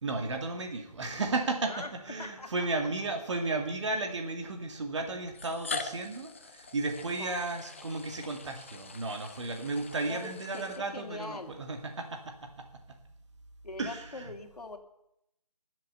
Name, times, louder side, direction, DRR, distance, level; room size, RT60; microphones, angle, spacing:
voice 1, 0.0-12.7 13.8-14.3, right 3 dB, 50° right, 4 dB, 2.2 m, -34 dB
sound 1, 1.9-2.0 3.0-3.1 4.2-4.3 5.3-11.3, left 4 dB, 20° left, 0.5 m, -43 dB
voice 2, 2.2-2.7 7.2-7.6 10.1-11.6 13.6-14.8, left 3 dB, 75° left, 6 dB, 2.4 m, -42 dB
20.5 x 7.6 x 6.9 m, 0.81 s
figure-of-eight pair, 160°, 20 cm